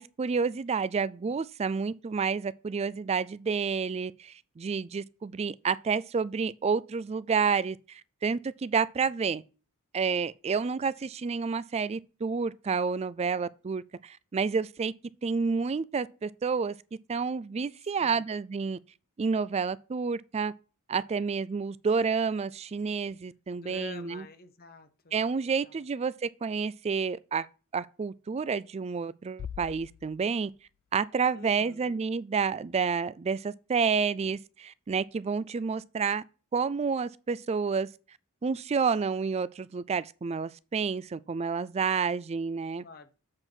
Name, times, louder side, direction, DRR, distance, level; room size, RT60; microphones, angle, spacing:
voice 1, 0.0-9.4 9.9-14.9 15.2-16.8 17.1-18.8 19.2-20.5 20.9-24.2 25.1-27.5 27.7-30.5 30.9-36.2 36.5-37.9 38.4-42.8, right 5 dB, 30° right, 0.3 m, -29 dB
voice 2, 23.6-25.2 25.6-25.8 31.3-32.0 42.8-43.2, left 4 dB, 45° left, 0.9 m, -48 dB
Bass drum, 29.4-31.1, left 8 dB, 80° left, 0.3 m, -44 dB
7.7 x 4.5 x 6.0 m
head